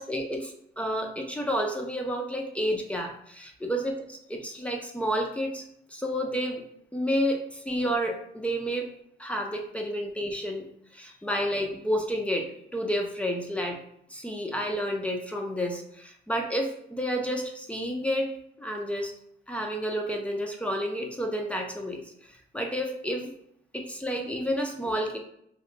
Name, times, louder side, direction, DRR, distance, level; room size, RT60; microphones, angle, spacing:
voice 1, 0.0-5.6 5.9-6.6 6.9-8.9 9.2-10.7 10.9-13.8 14.1-19.1 19.5-23.3 23.7-25.2, equal, 5° left, 1 dB, 0.6 m, -30 dB
2.9 x 2.3 x 3.3 m, 0.71 s
cardioid pair, 90°, 20 cm